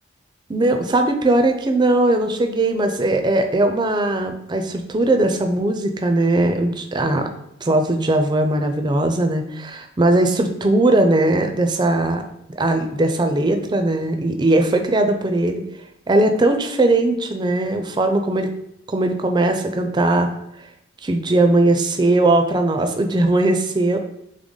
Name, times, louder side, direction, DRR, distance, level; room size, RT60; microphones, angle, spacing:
voice 1, 0.5-7.3 7.6-12.2 12.6-15.6 16.1-18.5 18.9-20.3 21.0-24.0, right 2 dB, 20° right, 6 dB, 0.4 m, -19 dB
3.6 x 3.3 x 3.9 m, 0.78 s
head